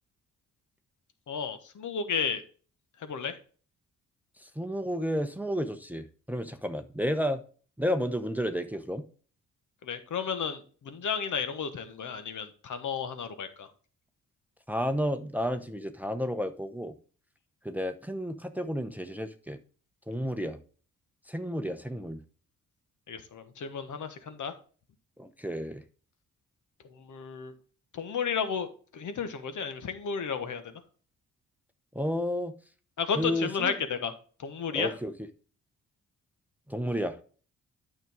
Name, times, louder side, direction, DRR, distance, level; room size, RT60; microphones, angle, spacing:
voice 1, 1.3-2.4 3.0-3.4 9.8-13.7 23.1-24.5 26.8-27.5 27.9-30.7 33.0-34.1 34.4-34.9, left 6 dB, 60° left, 10 dB, 1.3 m, -33 dB
voice 2, 4.4-7.4 7.8-9.0 14.7-16.9 17.6-19.6 20.1-20.6 21.3-22.2 25.2-25.8 31.9-32.5 33.2-33.8 34.7-35.1 36.7-37.2, equal, 5° right, 7 dB, 0.8 m, -31 dB
9.2 x 6.2 x 3.6 m, 0.40 s
supercardioid pair, 50°, 33 cm